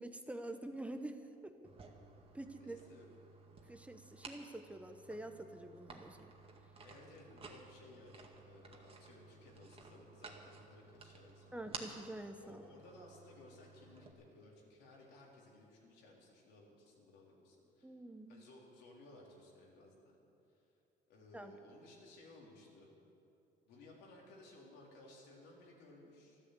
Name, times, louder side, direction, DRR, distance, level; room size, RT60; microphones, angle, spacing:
voice 1, 0.0-1.5 2.3-2.8 3.7-6.3 11.5-12.6 17.8-18.5 21.3-21.5, right 1 dB, 10° right, 7 dB, 0.9 m, -47 dB
sound 1, 1.6-14.1, right 4 dB, 35° right, 2.0 m, -55 dB
voice 2, 2.6-3.1 6.8-11.6 12.4-17.9 18.3-20.2 20.5-20.7 21.1-22.9 23.7-26.4, left 2 dB, 85° left, -2 dB, 3.8 m, -59 dB
13.0 x 13.0 x 8.1 m, 2.7 s
cardioid pair, 110°, 17 cm